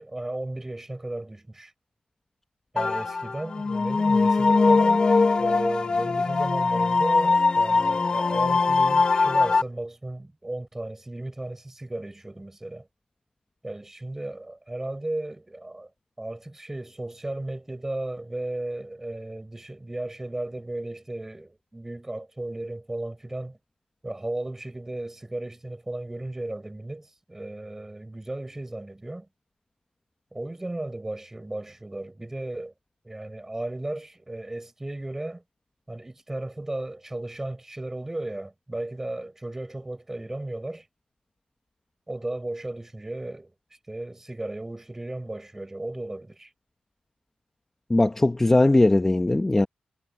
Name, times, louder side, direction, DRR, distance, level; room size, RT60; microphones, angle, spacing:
voice 1, 0.0-1.7 2.7-5.1 5.4-12.9 13.6-15.9 16.2-23.6 24.0-29.3 30.3-32.7 33.0-35.4 35.9-40.9 42.1-43.5 43.9-46.5, right 1 dB, 15° right, 4.6 m, -35 dB
sound 1, 2.8-9.6, left 4 dB, 35° left, 1.2 m, -21 dB
voice 2, 47.9-49.7, left 2 dB, 15° left, 1.0 m, -19 dB
wide cardioid pair, 145°, 3 cm